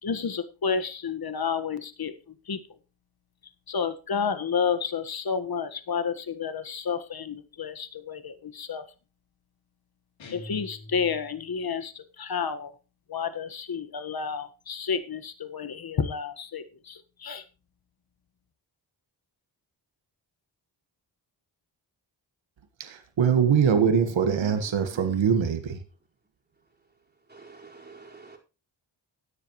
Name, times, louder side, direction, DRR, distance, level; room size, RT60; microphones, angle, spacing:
voice 1, 0.0-2.6 3.7-8.9 10.3-12.7 13.1-17.4, left 6 dB, 55° left, 1.5 m, -31 dB
sound 1, 10.2-11.6, left 1 dB, 80° left, 3.2 m, -44 dB
voice 2, 22.8-25.8, right 7 dB, 80° right, 1.6 m, -23 dB
voice 3, 24.4-25.1 27.3-28.4, right 3 dB, 20° right, 4.6 m, -47 dB
17.0 x 10.0 x 3.1 m
cardioid pair, 70°, 45 cm